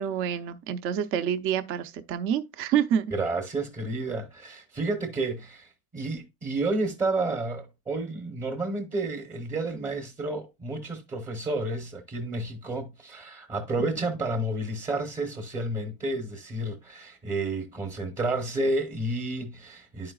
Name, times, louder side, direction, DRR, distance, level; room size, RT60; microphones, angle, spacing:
voice 1, 0.0-3.1 13.8-14.1, right 9 dB, 45° right, 0.6 m, -28 dB
voice 2, 3.1-20.1, right 2 dB, 15° right, 0.8 m, -31 dB
11.0 x 4.8 x 2.3 m
cardioid pair, 175°, 29 cm